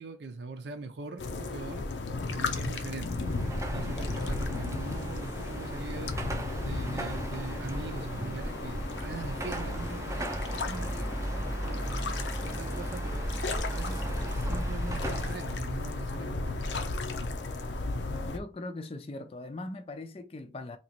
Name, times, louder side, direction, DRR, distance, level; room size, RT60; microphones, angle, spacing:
voice 1, 0.0-1.9 2.3-3.2 3.7-6.1 6.6-11.8 12.4-13.2 13.7-16.7, right 3 dB, 80° right, 0.6 m, -42 dB
sound 1, 1.2-18.4, left 3 dB, 90° left, 0.6 m, -35 dB
Car passing by / Traffic noise roadway noise / Engine, 3.0-15.6, right 1 dB, 15° right, 0.5 m, -35 dB
voice 2, 18.3-20.8, left 2 dB, 35° left, 0.4 m, -40 dB
3.0 x 2.9 x 4.3 m
head